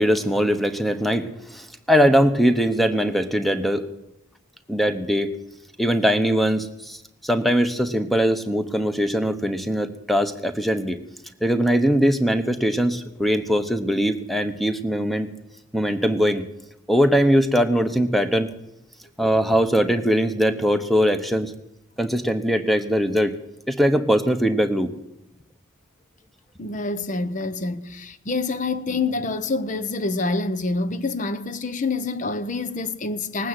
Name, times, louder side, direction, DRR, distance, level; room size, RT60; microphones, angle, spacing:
voice 1, 0.0-3.9 4.7-5.3 5.8-11.0 11.4-15.3 15.7-16.4 16.9-18.5 19.2-21.5 22.0-23.3 23.7-24.9, equal, ahead, 1.0 m, -21 dB
voice 2, 26.6-33.5, left 3 dB, 40° left, 0.8 m, -27 dB
19.0 x 9.2 x 7.7 m
head